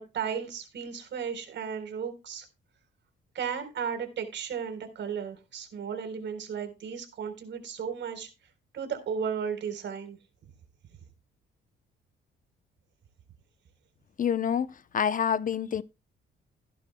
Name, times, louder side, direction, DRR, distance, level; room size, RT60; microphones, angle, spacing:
voice 1, 0.0-2.4 3.3-8.3 8.7-10.2, right 7 dB, 65° right, 3.9 m, -34 dB
voice 2, 14.2-14.7 14.9-15.8, left 8 dB, 40° left, 0.7 m, -27 dB
16.5 x 10.5 x 2.2 m
cardioid pair, 90°, 20 cm